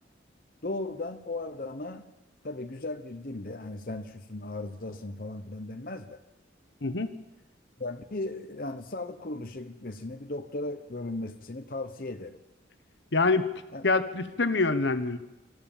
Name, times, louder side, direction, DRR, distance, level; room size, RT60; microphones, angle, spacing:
voice 1, 0.6-2.0 2.4-6.2 7.8-12.4 13.7-13.9, left 2 dB, 50° left, 5 dB, 1.0 m, -36 dB
voice 2, 6.8-7.1 13.1-13.5 13.8-15.2, left 3 dB, 70° left, 10 dB, 1.2 m, -25 dB
25.5 x 14.5 x 7.3 m, 0.99 s
head